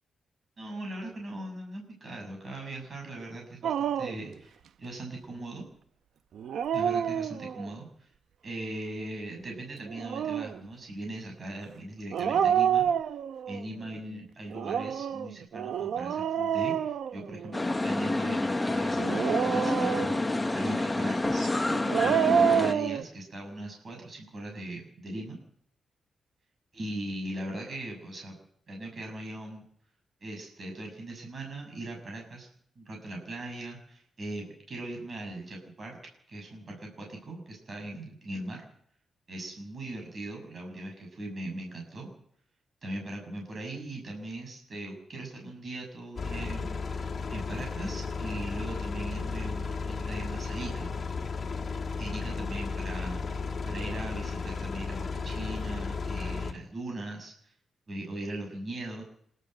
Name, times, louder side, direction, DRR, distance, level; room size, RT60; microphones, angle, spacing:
voice 1, 0.6-5.6 6.7-8.1 8.4-12.9 13.5-21.5 21.9-25.4 26.7-28.4 28.7-29.6 30.2-32.5 32.7-36.0 36.3-38.6 39.3-42.1 42.8-46.8 47.3-50.9 52.0-57.5 57.9-59.0, right 1 dB, 35° right, 1 dB, 6.8 m, -39 dB
Dog, 3.6-4.3 6.3-7.7 9.8-10.6 12.1-13.6 14.5-17.7 19.0-20.4 21.7-23.0, right 8 dB, 80° right, 0.8 m, -28 dB
sound 1, 17.5-22.7, left 2 dB, 15° left, 1.1 m, -28 dB
sound 2, 46.2-56.5, left 4 dB, 35° left, 2.5 m, -34 dB
27.0 x 12.5 x 7.9 m, 0.68 s
wide cardioid pair, 150°, 0 cm